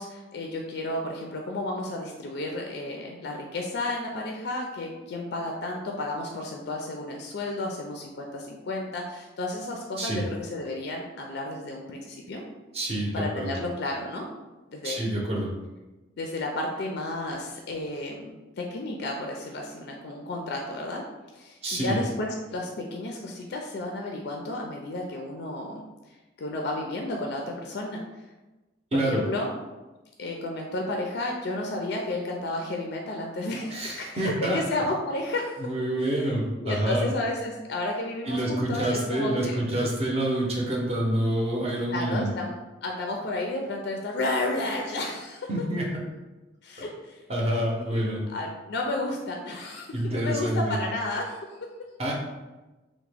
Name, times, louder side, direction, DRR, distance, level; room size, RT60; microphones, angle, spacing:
voice 1, 0.0-12.4 13.1-14.2 14.7-15.1 16.2-21.0 21.3-25.8 26.4-28.0 28.9-29.5 30.2-35.6 36.0-36.3 36.6-39.6 41.9-42.5 42.8-45.5 46.6-47.2 47.9-48.0 48.3-51.6, left 2 dB, 55° left, 1 dB, 0.3 m, -32 dB
voice 2, 12.7-13.6 14.8-15.5 21.6-22.0 28.9-29.2 33.7-34.6 35.6-37.1 38.3-42.3 45.5-46.0 47.3-48.2 49.9-50.8 52.0-52.1, right 1 dB, 30° right, -2 dB, 0.6 m, -27 dB
3.4 x 2.1 x 3.3 m, 1.1 s
head